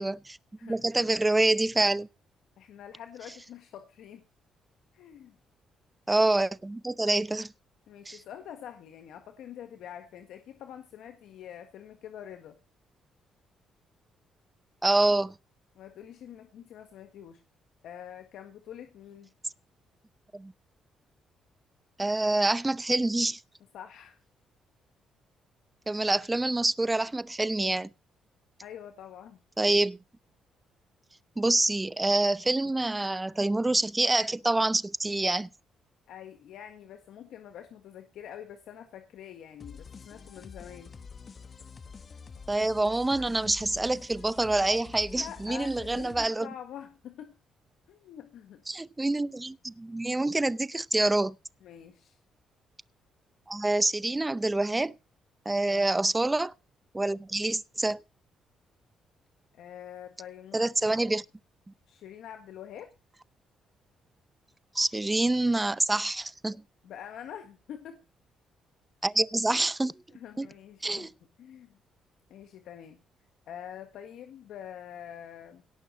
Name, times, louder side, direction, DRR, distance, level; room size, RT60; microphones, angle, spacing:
voice 1, 0.0-2.1 6.1-7.5 8.1-8.2 14.8-15.4 20.3-20.5 22.0-23.4 25.9-27.9 29.6-30.0 31.4-35.5 42.5-46.5 48.7-51.3 53.5-55.0 55.5-56.5 56.9-58.0 60.5-61.2 64.7-66.6 69.0-69.9 70.4-70.5 70.8-71.1, right 2 dB, 15° right, 0.6 m, -26 dB
voice 2, 2.6-4.2 4.9-5.4 7.1-7.2 7.9-12.6 15.7-17.4 17.8-19.3 23.7-24.2 28.6-29.4 36.1-40.9 45.1-47.3 47.9-48.6 51.6-52.2 55.7-55.9 59.5-61.1 61.9-62.9 66.8-68.0 70.1-71.1 71.4-71.8 72.3-73.0 73.5-75.6, left 9 dB, 80° left, 1.5 m, -45 dB
sound 1, 39.6-46.3, left 5 dB, 40° left, 1.0 m, -47 dB
18.0 x 6.1 x 6.7 m
cardioid pair, 90°, 0 cm